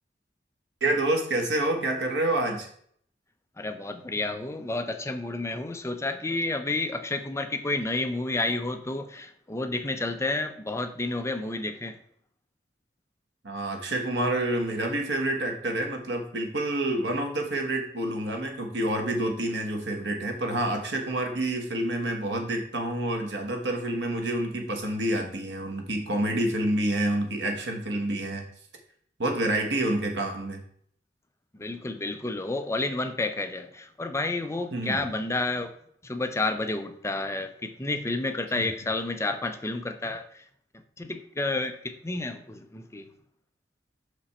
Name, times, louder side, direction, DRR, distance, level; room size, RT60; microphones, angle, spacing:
voice 1, 0.8-2.7 13.4-28.4 29.2-30.6 34.7-35.0 38.6-38.7, right 1 dB, 85° right, 3 dB, 1.5 m, -28 dB
voice 2, 3.6-11.9 31.6-35.7 36.0-40.4 41.0-43.1, left 2 dB, 15° left, 7 dB, 0.6 m, -30 dB
6.2 x 5.2 x 4.2 m, 0.62 s
head